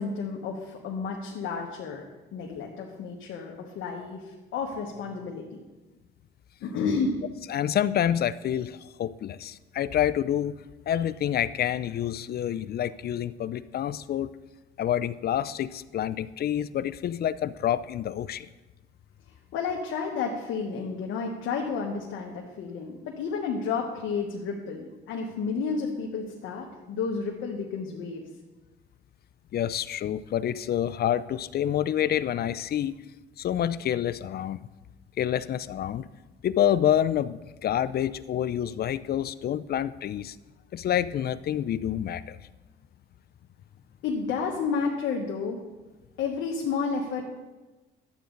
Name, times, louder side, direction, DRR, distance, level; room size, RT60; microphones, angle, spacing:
voice 1, 0.0-2.0 2.3-5.6 6.6-7.2 19.5-28.2 44.0-45.6 46.2-47.2, left 5 dB, 80° left, 0 dB, 1.2 m, -31 dB
voice 2, 7.5-10.5 10.9-14.3 14.8-18.5 29.5-33.0 33.4-34.7 35.2-36.1 36.4-40.4 40.7-42.4, left 10 dB, 50° left, 16 dB, 0.4 m, -28 dB
11.5 x 8.2 x 3.9 m, 1.2 s
cardioid pair, 90°, 20 cm